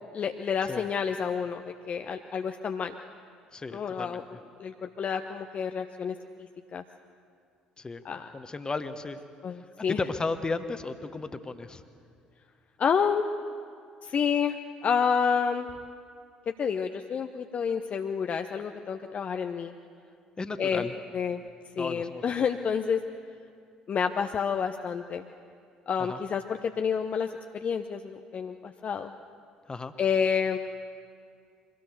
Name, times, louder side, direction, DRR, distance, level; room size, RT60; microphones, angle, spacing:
voice 1, 0.1-2.9 3.7-4.2 4.6-6.1 6.7-6.8 8.0-8.3 9.4-10.0 12.8-13.3 14.0-14.6 14.8-15.7 16.6-19.7 20.6-20.8 21.1-21.4 21.8-23.0 23.9-25.2 25.9-29.1 30.0-30.6, left 6 dB, 40° left, 6 dB, 0.7 m, -29 dB
voice 2, 3.5-4.4 7.8-8.0 8.3-9.2 9.9-11.8 20.4-20.9 21.8-22.3 26.0-26.2 29.7-29.9, left 3 dB, 20° left, 10 dB, 1.2 m, -34 dB
24.0 x 17.0 x 6.9 m, 2.3 s
figure-of-eight pair, 55°, 4 cm